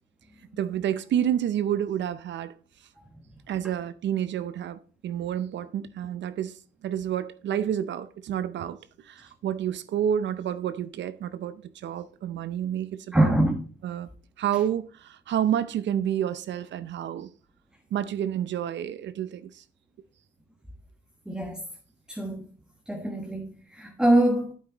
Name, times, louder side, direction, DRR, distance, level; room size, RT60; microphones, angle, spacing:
voice 1, 0.6-2.5 3.5-13.3 13.8-14.1 14.4-17.3 17.9-19.6, right 10 dB, 65° right, 0.6 m, -29 dB
voice 2, 13.1-13.6 21.3-21.6 22.1-22.5 22.9-24.5, right 1 dB, 5° right, 1.4 m, -24 dB
8.8 x 8.0 x 3.9 m
cardioid pair, 90°, 20 cm